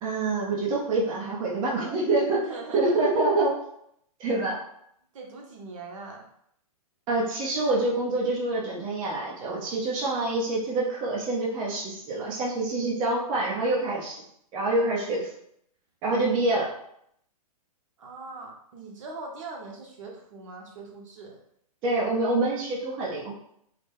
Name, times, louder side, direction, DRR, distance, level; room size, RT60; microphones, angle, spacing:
voice 1, 0.0-3.5 4.2-4.6 7.1-14.1 14.5-15.3 16.0-16.7 21.8-23.4, right 2 dB, 25° right, -4 dB, 0.7 m, -26 dB
voice 2, 2.4-3.2 5.1-6.2 18.0-21.4, right 3 dB, 55° right, 0 dB, 1.0 m, -41 dB
4.0 x 2.1 x 3.4 m, 0.72 s
hypercardioid pair, 140°, 20 cm